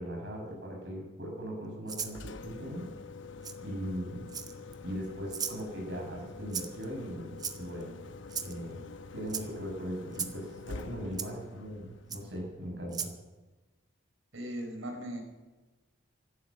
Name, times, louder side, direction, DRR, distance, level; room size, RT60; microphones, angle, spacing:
voice 1, 0.0-2.9 3.6-4.2 4.8-7.9 8.4-8.8 9.1-13.1, equal, 55° right, -1 dB, 6.9 m, -39 dB
Rattle (instrument), 1.9-2.2 3.4-3.6 4.3-4.7 5.3-5.6 6.5-6.8 7.4-7.8 8.3-8.5 9.3-9.5 10.1-10.4 11.2-11.3 12.1-12.2 12.9-13.1, right 6 dB, 20° right, 0.8 m, -36 dB
Engine, 2.0-12.9, left 3 dB, 65° left, 1.0 m, -47 dB
voice 2, 14.3-15.2, right 1 dB, 75° right, 3 dB, 4.4 m, -38 dB
16.0 x 12.5 x 6.3 m, 1.2 s
head